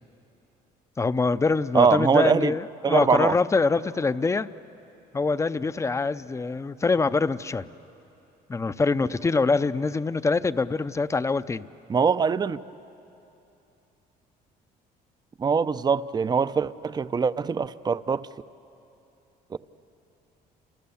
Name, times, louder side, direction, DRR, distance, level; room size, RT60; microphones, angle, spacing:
voice 1, 1.0-4.5 5.1-7.7 8.5-11.7, left 4 dB, 15° left, 14 dB, 0.6 m, -24 dB
voice 2, 1.7-2.5 2.8-3.4 11.9-12.6 15.4-18.3 19.5-19.6, right 5 dB, 25° right, 15 dB, 0.6 m, -22 dB
29.5 x 28.0 x 7.1 m, 2.8 s
cardioid pair, 110°, 17 cm